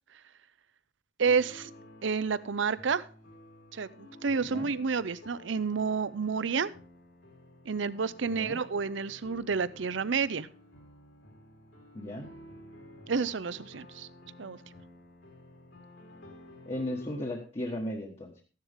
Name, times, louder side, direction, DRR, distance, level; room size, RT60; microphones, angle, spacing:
sound 1, 1.2-17.2, left 1 dB, 75° left, 4.0 m, -52 dB
voice 1, 1.2-1.7 2.0-3.1 3.7-6.7 7.7-10.5 13.1-14.1 14.4-14.6, right 5 dB, 75° right, 17 dB, 0.6 m, -30 dB
voice 2, 11.9-12.3 16.6-18.4, left 1 dB, 30° left, 0 dB, 1.4 m, -36 dB
14.5 x 10.5 x 3.6 m, 0.36 s
head